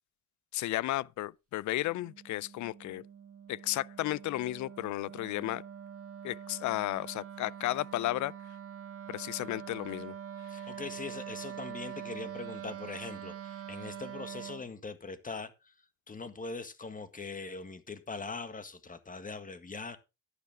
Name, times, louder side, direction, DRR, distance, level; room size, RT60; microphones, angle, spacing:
voice 1, 0.5-3.0 3.5-5.6 6.2-8.3 9.1-10.1 10.5-10.7, left 16 dB, 70° left, 0.5 m, -33 dB
Wind instrument woodwind instrument, 1.7-14.7, right 9 dB, 50° right, 2.2 m, -44 dB
voice 2, 10.5-20.0, left 4 dB, 25° left, 1.7 m, -42 dB
11.5 x 10.0 x 3.6 m
cardioid pair, 90°, 30 cm